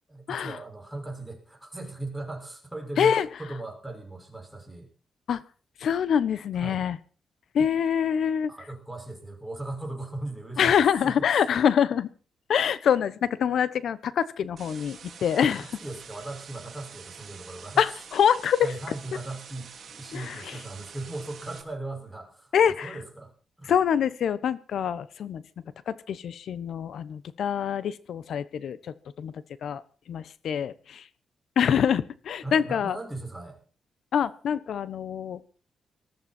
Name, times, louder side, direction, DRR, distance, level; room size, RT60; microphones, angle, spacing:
voice 1, 0.1-4.9 6.5-6.8 8.5-11.5 15.2-15.3 15.8-17.8 18.6-22.6 22.8-23.3 23.6-23.7 32.4-33.6, right 2 dB, 5° right, 2 dB, 5.9 m, -38 dB
voice 2, 5.8-7.0 7.5-8.5 10.6-12.1 12.5-15.7 17.8-18.7 20.1-20.6 22.5-23.0 23.7-25.4 25.9-28.8 29.2-29.3 29.6-29.8 30.1-31.0 31.6-33.0 34.1-35.5, left 8 dB, 75° left, 16 dB, 1.1 m, -25 dB
sound 1, 14.6-21.6, right 6 dB, 60° right, 3.0 m, -46 dB
19.5 x 14.0 x 4.5 m, 0.38 s
cardioid pair, 115°, 0 cm